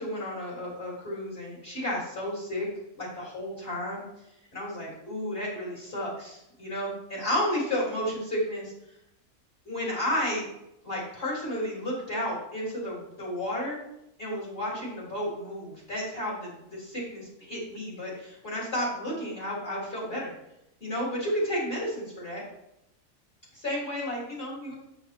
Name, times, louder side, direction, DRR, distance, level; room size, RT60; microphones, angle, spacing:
voice 1, 0.0-2.7 2.9-4.0 4.5-8.7 9.7-10.5 10.8-13.8 14.2-20.3 20.8-22.4 23.5-24.7, left 1 dB, 40° left, -5 dB, 3.7 m, -32 dB
8.9 x 8.0 x 2.9 m, 0.84 s
omnidirectional pair, 1.6 m